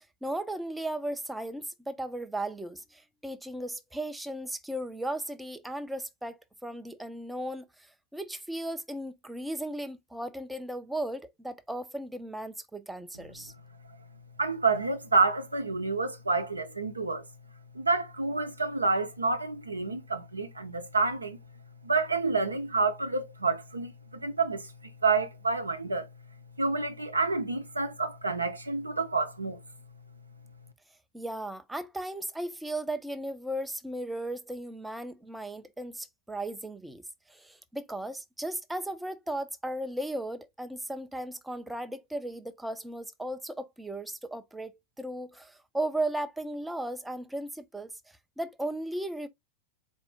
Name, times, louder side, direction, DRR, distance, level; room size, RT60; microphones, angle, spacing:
voice 1, 0.0-13.5 31.1-37.0 37.3-44.7 45.0-49.3, right 1 dB, 5° right, 0.4 m, -36 dB
voice 2, 14.4-17.2 17.7-21.4 21.8-24.7 25.0-26.1 26.6-29.6, right 3 dB, 80° right, 0.6 m, -28 dB
4.1 x 2.6 x 3.4 m
figure-of-eight pair, 90°, 0 cm